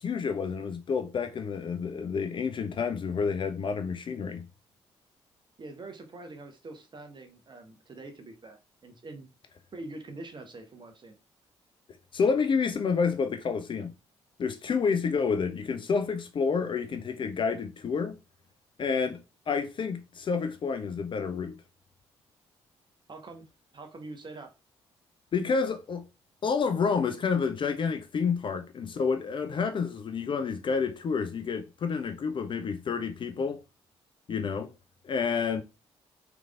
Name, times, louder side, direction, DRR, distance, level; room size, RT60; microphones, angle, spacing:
voice 1, 0.0-4.5 12.1-13.9 14.4-18.2 18.8-19.2 19.5-21.6 25.3-26.1 26.4-33.6 34.3-34.7 35.0-35.6, left 5 dB, 35° left, 0.4 m, -29 dB
voice 2, 5.6-9.3 9.7-11.1 23.1-23.5 23.7-24.5, right 2 dB, 35° right, 0.9 m, -44 dB
3.4 x 3.1 x 2.4 m
figure-of-eight pair, 40°, 14 cm